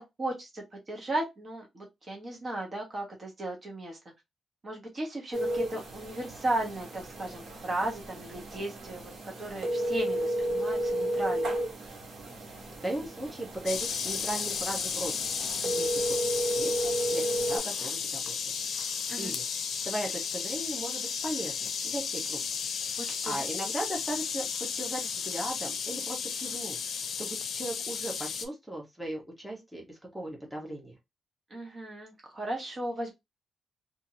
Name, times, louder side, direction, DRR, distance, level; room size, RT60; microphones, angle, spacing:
voice 1, 0.0-4.0 4.6-11.5 19.1-19.3 23.1-23.4 31.5-33.1, right 1 dB, 35° right, 1.0 m, -35 dB
sound 1, 5.3-17.6, right 1 dB, 75° right, 1.2 m, -33 dB
voice 2, 12.4-15.1 15.6-18.7 19.2-19.4 19.8-22.4 22.8-31.0, right 1 dB, 5° right, 1.0 m, -38 dB
sound 2, 13.7-28.5, left 6 dB, 75° left, 0.5 m, -33 dB
2.7 x 2.5 x 2.7 m
cardioid pair, 115°, 0 cm